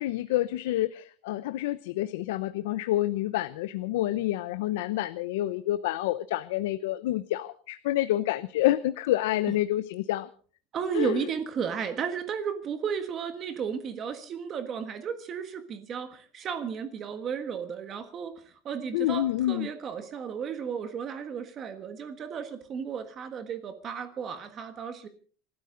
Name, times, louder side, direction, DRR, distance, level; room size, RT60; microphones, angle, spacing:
voice 1, 0.0-10.3 10.9-11.2 18.9-19.7, left 15 dB, 90° left, 13 dB, 0.7 m, -28 dB
voice 2, 10.7-25.1, right 7 dB, 25° right, 9 dB, 1.5 m, -34 dB
28.0 x 13.0 x 3.9 m, 0.42 s
cardioid pair, 175°, 0 cm